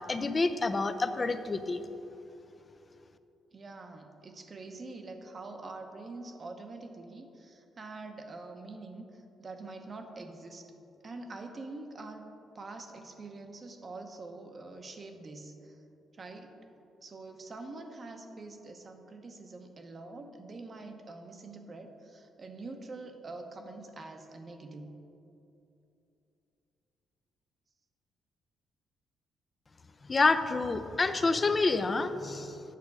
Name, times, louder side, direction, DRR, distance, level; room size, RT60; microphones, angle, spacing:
voice 1, 0.0-1.8 30.1-32.6, left 3 dB, 30° left, 10 dB, 0.5 m, -28 dB
voice 2, 3.5-10.7 11.0-15.8 16.1-16.5 17.0-24.9, right 3 dB, 40° right, 5 dB, 0.8 m, -45 dB
8.4 x 6.2 x 4.8 m, 2.8 s
cardioid pair, 90°, 0 cm